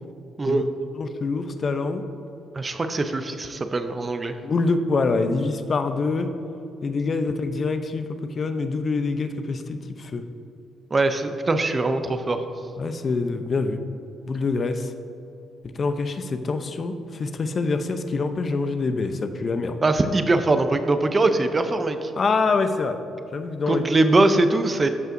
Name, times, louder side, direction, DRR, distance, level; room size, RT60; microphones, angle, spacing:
voice 1, 1.0-2.0 4.4-6.3 6.8-8.1 8.4-10.2 12.8-13.8 14.3-14.9 15.8-16.9 17.2-19.8 22.2-23.0 23.3-23.8, left 4 dB, 45° left, 8 dB, 0.6 m, -25 dB
voice 2, 2.5-4.4 10.9-12.4 19.8-22.1 23.7-24.9, right 2 dB, 30° right, 8 dB, 0.6 m, -22 dB
13.5 x 5.4 x 2.6 m, 2.9 s
cardioid pair, 90°, 0 cm